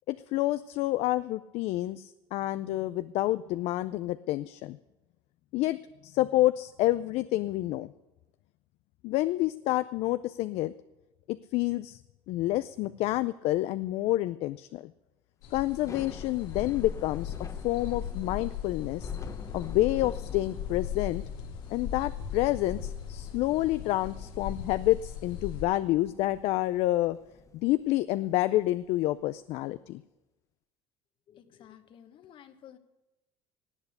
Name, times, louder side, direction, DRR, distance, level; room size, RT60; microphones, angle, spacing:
voice 1, 0.1-4.8 5.5-7.9 9.0-10.7 11.3-12.0 12.3-14.9 15.5-17.3 17.6-19.1 19.5-21.2 21.7-27.2 27.5-30.0, left 16 dB, 65° left, 13 dB, 0.4 m, -28 dB
sound 1, 15.4-25.6, left 8 dB, 90° left, 2.1 m, -38 dB
Thunder / Rain, 15.7-28.8, left 5 dB, 30° left, 1.0 m, -48 dB
voice 2, 31.3-32.8, left 10 dB, 50° left, 10 dB, 1.3 m, -53 dB
18.0 x 8.2 x 6.6 m, 1.0 s
cardioid pair, 120°, 11 cm